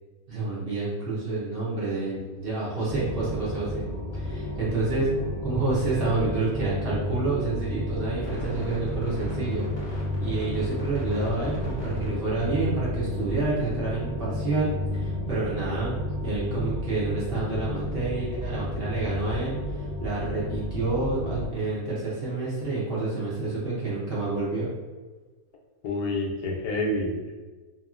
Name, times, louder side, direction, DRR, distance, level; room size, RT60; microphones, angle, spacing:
voice 1, 0.3-3.8 4.1-5.1 5.4-15.9 16.2-24.7, right 3 dB, 50° right, -7 dB, 0.7 m, -29 dB
sound 1, 2.9-21.5, left 1 dB, 25° left, 0.7 m, -32 dB
voice 2, 25.8-27.3, left 1 dB, 85° left, 0 dB, 1.1 m, -28 dB
2.8 x 2.7 x 2.4 m, 1.3 s
omnidirectional pair, 1.6 m